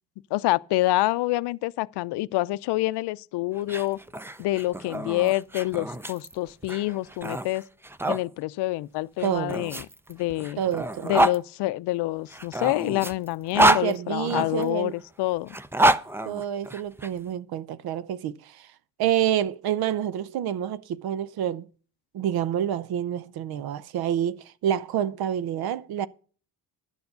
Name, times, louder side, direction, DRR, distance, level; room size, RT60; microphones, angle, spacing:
voice 1, 0.3-4.0 4.4-7.6 8.1-10.6 11.0-15.6, left 18 dB, 70° left, 0.6 m, -27 dB
sound 1, 3.6-8.2 9.2-11.4 12.3-14.7 15.5-17.1, right 1 dB, 5° right, 0.5 m, -26 dB
voice 2, 9.2-9.6 10.6-11.1 13.6-14.9 16.2-18.7 19.0-21.7 22.1-26.1, right 10 dB, 60° right, 0.8 m, -28 dB
11.5 x 7.0 x 6.7 m
cardioid pair, 100°, 41 cm